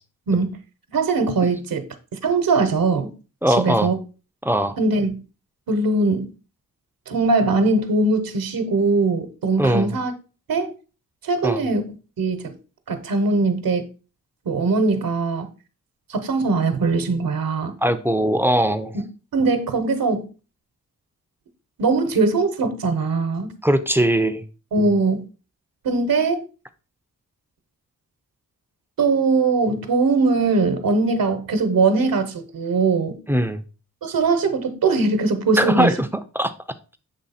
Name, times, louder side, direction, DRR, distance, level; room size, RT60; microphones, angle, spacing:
voice 1, 0.3-0.6 0.9-1.9 2.2-3.1 3.6-4.0 4.8-5.2 5.7-6.3 7.1-10.1 10.5-10.7 11.2-12.5 12.9-13.9 14.4-15.5 16.1-17.7 18.9-19.0 19.3-20.3 21.8-23.5 24.7-25.2 25.8-26.4 29.0-33.2 34.0-35.9, right 3 dB, 80° right, 1.0 m, -21 dB
voice 2, 3.4-3.9 4.4-4.8 9.6-9.9 11.4-11.6 17.8-18.9 23.6-24.4 33.3-33.6 35.6-36.1 36.3-36.5, equal, 5° right, 0.5 m, -20 dB
7.3 x 3.2 x 4.1 m
wide cardioid pair, 115°, 34 cm